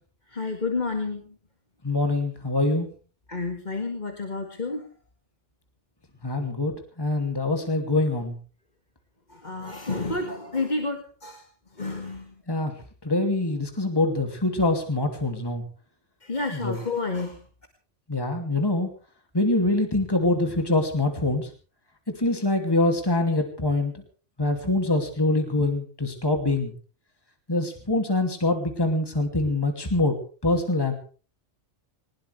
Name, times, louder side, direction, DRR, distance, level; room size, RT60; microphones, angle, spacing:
voice 1, 0.3-1.3 3.3-4.9 9.3-11.4 11.8-12.3 16.2-17.4, left 3 dB, 40° left, 4 dB, 2.1 m, -30 dB
voice 2, 1.8-2.9 6.2-8.3 12.5-12.7 13.0-15.6 16.5-16.8 18.1-18.9 19.3-21.5 22.1-23.9 24.4-26.7 27.5-30.1 30.4-30.9, left 2 dB, 20° left, 5 dB, 2.7 m, -24 dB
21.0 x 20.0 x 3.4 m, 0.40 s
omnidirectional pair, 1.2 m